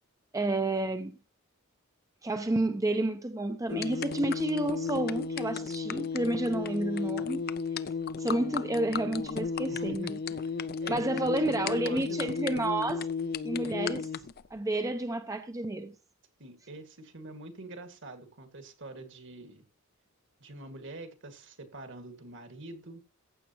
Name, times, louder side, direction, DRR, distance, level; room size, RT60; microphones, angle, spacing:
voice 1, 0.3-1.2 2.2-7.5 8.2-10.2 10.9-13.1 13.4-14.1 14.5-15.9, right 2 dB, 15° right, 0.6 m, -30 dB
sound 1, 3.7-14.5, left 5 dB, 45° left, 0.5 m, -34 dB
voice 2, 9.7-12.3 16.4-19.6 20.4-23.0, right 2 dB, 60° right, 2.0 m, -45 dB
15.0 x 8.3 x 2.9 m
head